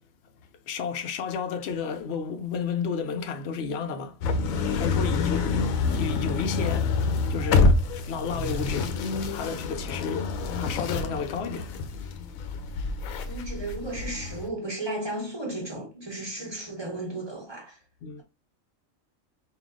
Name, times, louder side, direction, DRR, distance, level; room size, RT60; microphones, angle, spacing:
voice 1, 0.7-4.2 4.5-5.7 5.9-7.0 7.3-9.0 9.3-11.8 18.0-18.2, left 5 dB, 60° left, 0.8 m, -32 dB
sound 1, 4.2-14.5, left 4 dB, 90° left, 1.0 m, -27 dB
voice 2, 5.1-5.5 13.2-17.8, right 2 dB, 20° right, 1.0 m, -35 dB
3.8 x 2.5 x 3.5 m
omnidirectional pair, 1.4 m